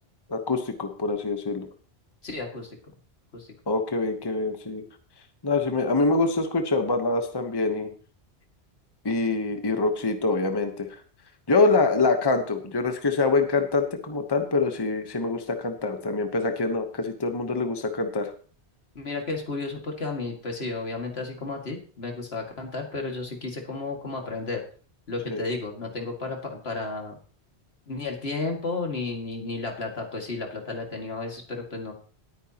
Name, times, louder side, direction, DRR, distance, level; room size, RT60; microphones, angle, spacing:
voice 1, 0.3-1.7 3.7-4.8 5.4-7.9 9.0-10.9 11.5-18.3 25.3-25.4, left 3 dB, 25° left, 6 dB, 1.0 m, -25 dB
voice 2, 2.2-2.8 3.3-3.5 18.9-24.6 25.1-27.2 27.9-31.9, left 3 dB, 70° left, 2 dB, 2.4 m, -33 dB
19.0 x 9.1 x 2.9 m, 0.41 s
omnidirectional pair, 1.1 m